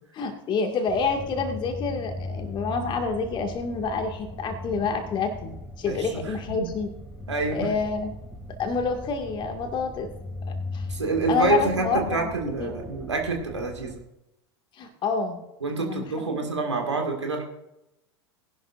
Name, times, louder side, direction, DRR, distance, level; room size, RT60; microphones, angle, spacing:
voice 1, 0.1-6.9 7.5-8.1 8.6-10.1 10.7-10.9 11.3-12.3 12.6-12.7 14.8-15.4 15.8-16.5, left 5 dB, 35° left, 4 dB, 2.1 m, -28 dB
sound 1, 0.9-14.0, left 2 dB, 5° right, 2.6 m, -38 dB
voice 2, 5.8-6.2 6.5-6.7 7.3-7.7 10.9-14.0 15.6-17.4, right 4 dB, 80° right, 3 dB, 2.1 m, -27 dB
19.0 x 11.0 x 2.6 m, 0.89 s
figure-of-eight pair, 85°, 14 cm